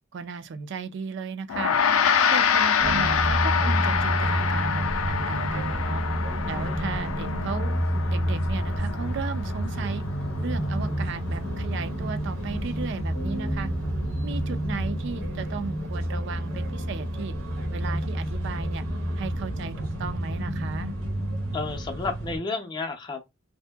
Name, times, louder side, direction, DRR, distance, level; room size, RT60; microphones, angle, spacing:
voice 1, 0.1-1.8 2.3-6.0 6.5-7.8 8.1-10.0 10.4-13.7 14.2-17.4 17.7-18.8 19.2-20.9, right 5 dB, 60° right, 0.4 m, -35 dB
Gong, 1.5-11.1, left 7 dB, 85° left, 0.4 m, -26 dB
sound 1, 2.8-22.4, equal, 80° right, 0.9 m, -29 dB
voice 2, 21.5-23.2, left 3 dB, 20° left, 0.5 m, -31 dB
2.7 x 2.5 x 2.2 m
head